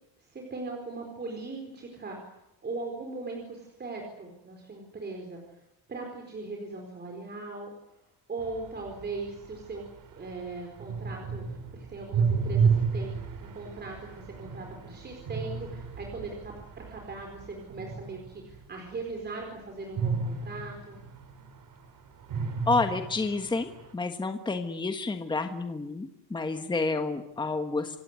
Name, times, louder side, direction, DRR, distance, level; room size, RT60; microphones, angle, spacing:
voice 1, 0.2-5.4 5.9-7.7 8.3-21.0, right 3 dB, 25° right, 2 dB, 4.4 m, -39 dB
sound 1, 8.4-18.6 20.0-21.9 22.2-23.9, right 5 dB, 55° right, 4.0 m, -32 dB
voice 2, 22.7-28.0, left 3 dB, 10° left, 6 dB, 1.4 m, -29 dB
27.5 x 17.0 x 9.6 m, 0.86 s
cardioid pair, 180°, 40 cm